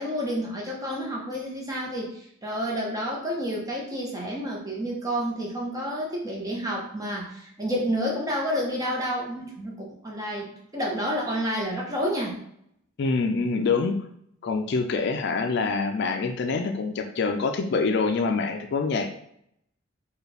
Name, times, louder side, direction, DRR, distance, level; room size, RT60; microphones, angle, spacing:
voice 1, 0.0-12.4, equal, 20° right, -2 dB, 0.8 m, -30 dB
voice 2, 13.0-14.0 14.4-19.1, left 4 dB, 55° left, 6 dB, 0.3 m, -25 dB
4.4 x 2.4 x 3.3 m, 0.72 s
head